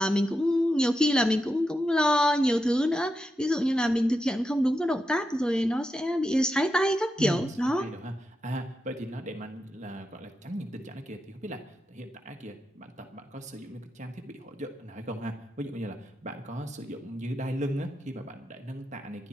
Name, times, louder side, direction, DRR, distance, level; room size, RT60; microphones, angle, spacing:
voice 1, 0.0-7.9, equal, 5° left, 9 dB, 0.5 m, -25 dB
voice 2, 7.2-19.3, equal, 35° right, 4 dB, 1.5 m, -37 dB
26.0 x 11.5 x 4.4 m, 0.77 s
head